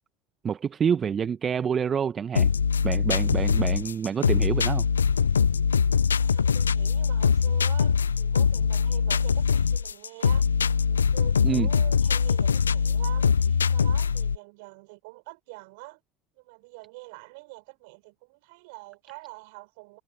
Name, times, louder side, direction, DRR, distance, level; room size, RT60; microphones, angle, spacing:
voice 1, 0.4-2.5 2.8-4.9 11.4-11.7, right 7 dB, 35° right, 1.2 m, -27 dB
sound 1, 2.4-14.4, left 6 dB, 85° left, 0.3 m, -23 dB
voice 2, 6.2-10.5 10.9-16.0 16.4-20.0, right 27 dB, 65° right, 6.6 m, -45 dB
figure-of-eight pair, 70°, 0 cm